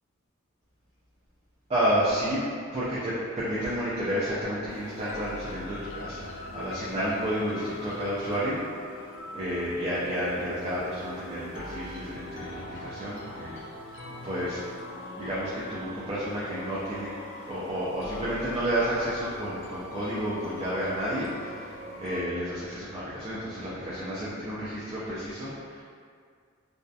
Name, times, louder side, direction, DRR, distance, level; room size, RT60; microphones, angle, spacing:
voice 1, 1.7-2.4 2.7-8.6 9.3-13.6 14.2-14.6 15.2-17.1 17.5-25.8, equal, 30° right, -9 dB, 0.4 m, -31 dB
sound 1, 4.7-22.2, left 1 dB, 65° left, 0.4 m, -42 dB
2.7 x 2.1 x 2.3 m, 2.1 s
head